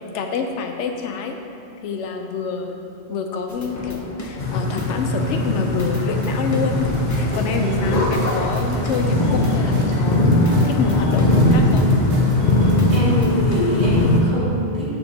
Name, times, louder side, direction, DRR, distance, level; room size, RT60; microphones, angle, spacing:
voice 1, 0.1-1.4 1.8-11.9, left 5 dB, 85° left, 5 dB, 0.9 m, -27 dB
sound 1, 3.5-5.3 5.8-7.6 8.0-13.6, left 1 dB, 25° left, 0.5 m, -33 dB
sound 2, 4.4-14.2, left 1 dB, 45° left, 0.8 m, -19 dB
sound 3, 6.9-13.0, right 1 dB, 75° right, 1.1 m, -33 dB
voice 2, 7.5-7.9 12.9-14.9, left 1 dB, 40° right, -9 dB, 1.8 m, -24 dB
7.1 x 6.7 x 2.7 m, 2.8 s
omnidirectional pair, 1.2 m